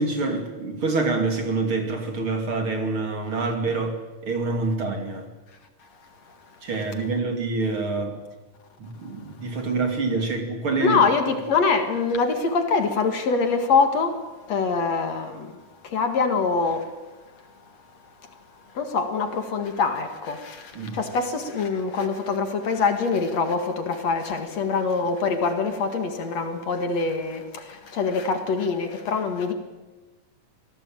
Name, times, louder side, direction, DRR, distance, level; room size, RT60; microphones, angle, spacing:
voice 1, 0.0-4.0 4.2-5.3 6.6-8.2 8.8-11.0 20.7-21.0, right 3 dB, 40° right, 3.1 m, -26 dB
voice 2, 10.8-17.0 18.2-18.3 18.7-29.5, left 4 dB, 55° left, 2.8 m, -24 dB
26.5 x 18.0 x 8.9 m
omnidirectional pair, 3.8 m